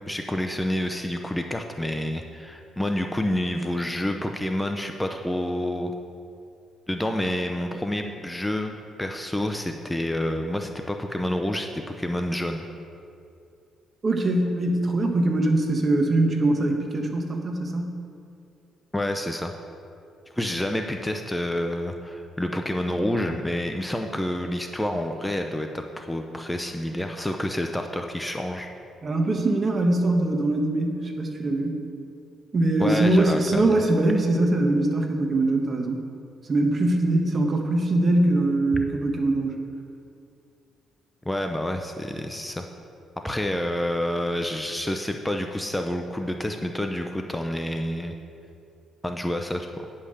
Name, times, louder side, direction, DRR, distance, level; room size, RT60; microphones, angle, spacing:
voice 1, 0.1-5.9 6.9-12.7 18.9-19.5 20.4-28.7 32.8-33.8 41.3-42.7 43.2-48.1 49.0-49.7, left 1 dB, 10° left, 4 dB, 0.6 m, -28 dB
voice 2, 14.0-18.0 29.0-31.8 32.5-36.0 36.5-39.6, right 2 dB, 40° right, 3 dB, 1.3 m, -22 dB
9.9 x 5.6 x 6.6 m, 2.5 s
cardioid pair, 90°, 0 cm